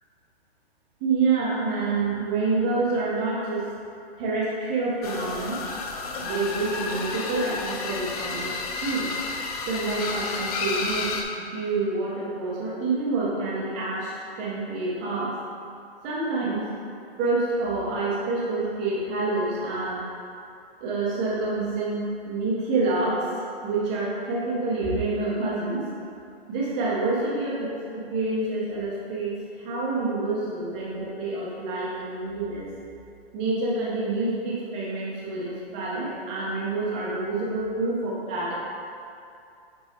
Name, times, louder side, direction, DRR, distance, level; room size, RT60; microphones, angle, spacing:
voice 1, 1.0-3.6 4.2-5.6 6.2-9.1 9.7-15.3 16.0-16.6 17.2-20.0 20.8-23.2 23.6-25.8 26.5-32.7 33.3-38.6, right 3 dB, 10° right, -6 dB, 0.3 m, -27 dB
sound 1, 5.0-11.2, left 4 dB, 35° left, 0.6 m, -31 dB
8.8 x 3.1 x 4.0 m, 2.5 s
hypercardioid pair, 155°, 32 cm